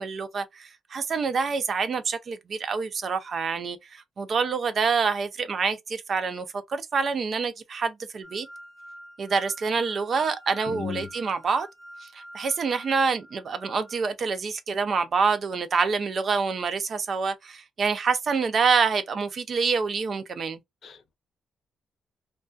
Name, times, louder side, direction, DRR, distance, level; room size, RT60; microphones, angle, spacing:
voice 1, 0.0-8.5 9.2-11.7 12.0-20.6, right 5 dB, 50° right, 0.4 m, -27 dB
sound 1, 8.2-14.0, right 1 dB, 25° right, 0.8 m, -46 dB
voice 2, 10.7-11.1 20.8-21.1, left 7 dB, 60° left, 0.5 m, -35 dB
2.2 x 2.2 x 2.4 m
cardioid pair, 115°, 0 cm